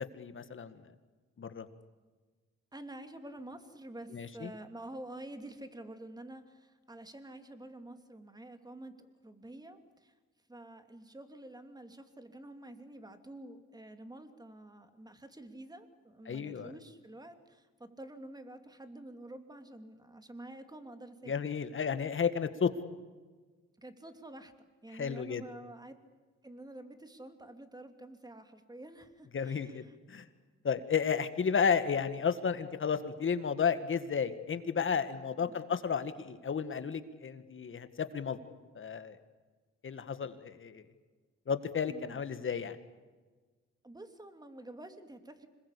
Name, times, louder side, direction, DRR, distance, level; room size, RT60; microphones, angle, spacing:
voice 1, 0.1-0.8 1.4-1.7 4.1-4.5 16.3-16.7 21.3-22.7 24.9-25.4 29.3-30.2 30.6-38.4 38.8-39.2 39.8-40.8 41.5-42.8, left 6 dB, 40° left, 10 dB, 1.9 m, -32 dB
voice 2, 2.7-10.1 10.5-21.3 23.8-24.5 24.8-25.9 26.4-29.8 35.3-35.6 41.9-42.2 43.8-45.5, right 1 dB, 15° right, 7 dB, 2.8 m, -48 dB
26.5 x 21.0 x 8.5 m, 1.4 s
cardioid pair, 90°, 30 cm